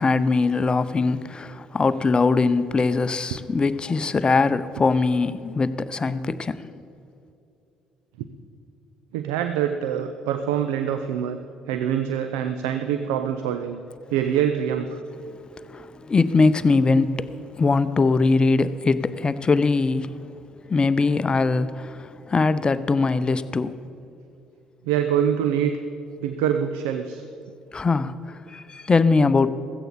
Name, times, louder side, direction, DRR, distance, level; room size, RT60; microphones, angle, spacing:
voice 1, 0.0-6.8 15.3-20.2 20.7-23.8 27.7-29.5, left 3 dB, 30° left, 14 dB, 0.6 m, -22 dB
voice 2, 9.1-11.4 11.7-13.8 14.1-15.0 24.8-25.7 26.2-27.2, right 9 dB, 75° right, 9 dB, 0.5 m, -25 dB
15.5 x 15.0 x 4.0 m, 2.7 s
figure-of-eight pair, 50°, 3 cm